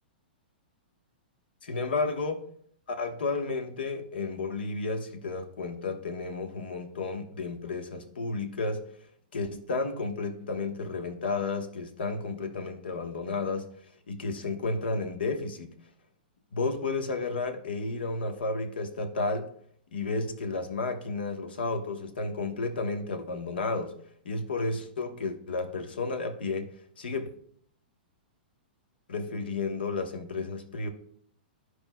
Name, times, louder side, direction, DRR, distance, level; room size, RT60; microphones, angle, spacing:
voice 1, 1.6-2.4 2.9-8.8 9.3-13.7 14.1-15.8 16.5-19.5 19.9-23.9 24.2-27.3 29.1-30.9, left 3 dB, 80° left, 7 dB, 1.1 m, -32 dB
13.5 x 4.7 x 2.3 m, 0.64 s
hypercardioid pair, 125°, 5 cm